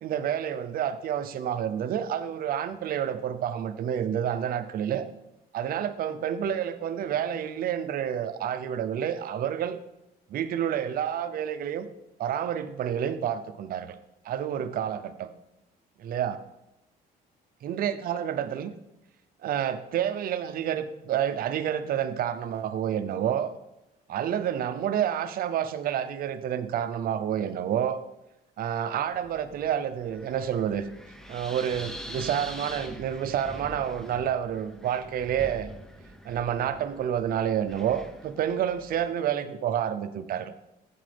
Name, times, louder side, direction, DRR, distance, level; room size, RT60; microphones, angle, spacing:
voice 1, 0.0-5.1 5.5-9.8 10.3-11.9 12.2-14.0 14.3-15.3 16.0-16.4 17.6-18.7 19.4-23.5 24.1-28.0 28.6-30.9 31.3-35.7 36.2-40.5, right 9 dB, 60° right, 11 dB, 0.6 m, -29 dB
Wind, 29.1-39.2, equal, 5° left, 0.7 m, -44 dB
8.5 x 7.5 x 3.5 m, 0.89 s
cardioid pair, 110°, 17 cm